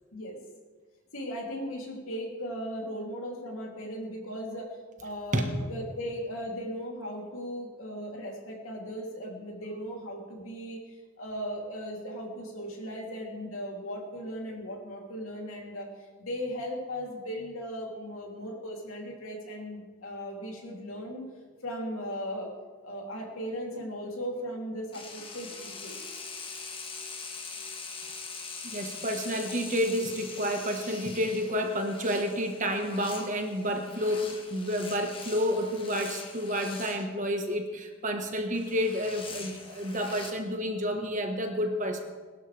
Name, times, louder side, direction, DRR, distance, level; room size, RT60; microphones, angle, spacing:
voice 1, 1.1-15.9 16.2-21.3 21.6-22.5 22.8-26.0, equal, 90° left, -1 dB, 3.1 m, -37 dB
sound 1, 24.9-37.1 38.5-40.3, left 4 dB, 25° left, 1.5 m, -43 dB
voice 2, 28.6-42.0, equal, 40° right, 4 dB, 1.5 m, -30 dB
21.0 x 12.0 x 3.4 m, 1.4 s
head